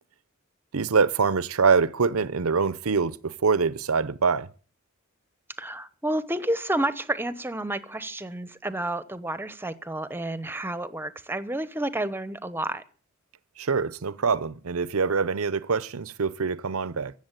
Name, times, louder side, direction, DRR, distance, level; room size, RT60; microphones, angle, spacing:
voice 1, 0.7-4.5 13.6-17.1, right 5 dB, 80° right, 0.7 m, -24 dB
voice 2, 5.6-12.8, right 1 dB, 10° right, 0.9 m, -30 dB
15.5 x 7.4 x 9.0 m
head